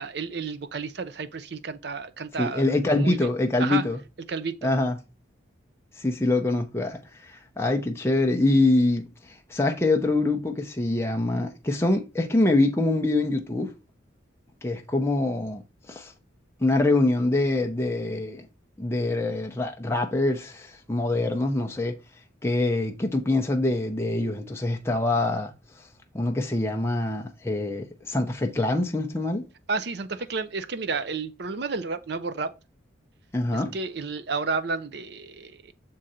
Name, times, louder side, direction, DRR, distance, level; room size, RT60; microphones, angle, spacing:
voice 1, 0.0-2.6 2.9-3.3 3.6-3.8 4.3-4.7 29.7-32.5 33.5-35.7, right 4 dB, 55° right, 0.5 m, -31 dB
voice 2, 2.4-4.0 4.6-5.0 6.0-13.7 14.6-15.6 15.9-16.1 16.6-18.5 18.8-22.0 22.4-25.5 26.1-29.4 33.3-33.7, left 2 dB, 15° left, 0.5 m, -24 dB
6.4 x 3.8 x 4.2 m
head